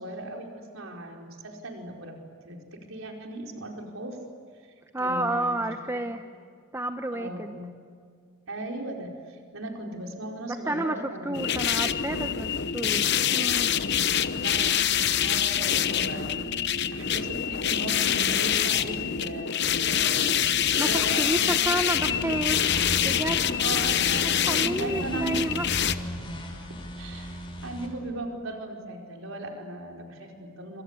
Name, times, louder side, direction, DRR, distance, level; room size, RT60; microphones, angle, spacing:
voice 1, 0.0-4.2 4.6-6.4 7.1-7.7 8.5-11.5 14.3-21.5 21.8-21.9 23.6-26.1 27.0-30.8, right 2 dB, 75° right, 1 dB, 4.9 m, -38 dB
voice 2, 4.9-6.2 6.7-7.6 10.5-13.7 20.7-22.6 23.0-23.7 24.4-25.7, right 1 dB, 10° right, 6 dB, 0.9 m, -30 dB
sound 1, 11.3-25.9, left 9 dB, 55° left, 0.9 m, -25 dB
sound 2, 21.8-27.9, equal, 25° left, 5.1 m, -37 dB
27.5 x 26.0 x 8.3 m, 2.1 s
head